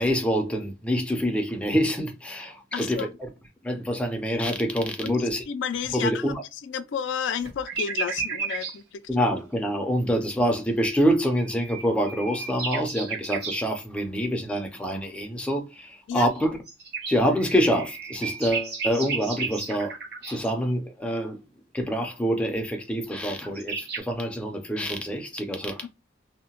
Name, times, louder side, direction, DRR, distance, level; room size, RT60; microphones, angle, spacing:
voice 1, 0.0-3.3 3.6-5.4 5.9-6.4 9.1-16.6 17.0-20.0 20.2-21.4 21.7-25.9, equal, 5° left, 0.4 m, -26 dB
voice 2, 2.7-3.1 5.0-6.3 6.6-9.0 16.1-16.3 25.8-25.9, left 7 dB, 75° left, 0.3 m, -31 dB
sound 1, 7.4-8.8 11.3-13.6 16.3-20.5 23.1-23.2 23.4-24.0, right 5 dB, 55° right, 0.9 m, -33 dB
2.7 x 2.1 x 2.8 m
head